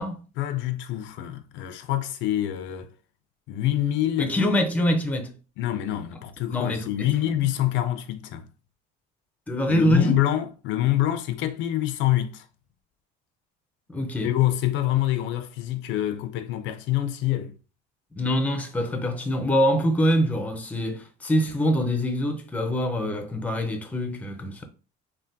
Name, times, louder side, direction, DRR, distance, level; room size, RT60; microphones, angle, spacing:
voice 1, 0.4-2.9 3.5-4.3 5.6-8.5 9.7-12.4 14.2-17.5, left 13 dB, 70° left, 0.4 m, -26 dB
voice 2, 4.2-5.3 6.5-7.3 9.5-10.1 13.9-14.3 18.1-24.6, equal, 5° left, 0.4 m, -24 dB
3.3 x 2.1 x 2.6 m
cardioid pair, 125°, 20 cm